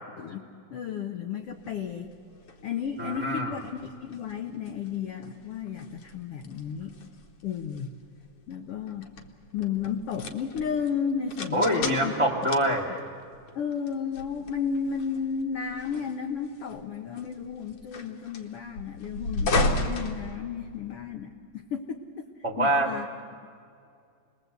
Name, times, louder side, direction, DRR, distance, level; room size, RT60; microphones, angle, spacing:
voice 1, 0.2-2.1 2.6-6.9 7.4-7.9 8.5-9.1 9.5-12.1 12.7-12.8 13.5-22.3 22.6-23.6, left 7 dB, 80° left, 5 dB, 1.3 m, -33 dB
sound 1, 1.6-21.0, left 2 dB, 50° left, 1.9 m, -36 dB
voice 2, 3.0-3.5 11.5-13.0 22.4-22.9, right 1 dB, 5° right, -1 dB, 1.4 m, -25 dB
28.0 x 21.0 x 8.1 m, 2.3 s
omnidirectional pair, 4.1 m